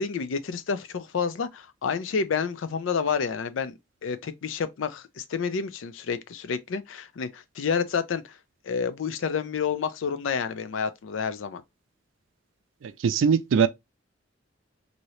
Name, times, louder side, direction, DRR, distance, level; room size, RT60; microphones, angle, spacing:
voice 1, 0.0-8.4 8.6-11.6, left 6 dB, 85° left, 0.4 m, -29 dB
voice 2, 13.0-13.7, right 6 dB, 85° right, 0.4 m, -20 dB
2.8 x 2.7 x 3.0 m
head